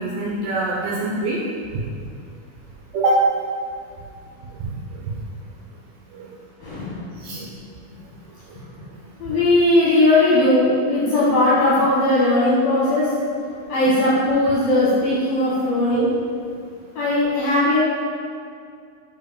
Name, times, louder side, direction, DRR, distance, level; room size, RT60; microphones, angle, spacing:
voice 1, 0.0-1.5 1.7-1.8 2.9-3.2 4.6-4.7 5.0-5.1 6.1-6.3 7.2-7.5 9.2-9.4 16.0-16.1, right 2 dB, 75° right, -4 dB, 2.3 m, -24 dB
voice 2, 6.6-7.4 9.2-13.1 13.7-16.1 16.9-17.8, left 1 dB, 60° left, -9 dB, 2.4 m, -18 dB
5.3 x 4.5 x 5.1 m, 2.3 s
omnidirectional pair, 4.0 m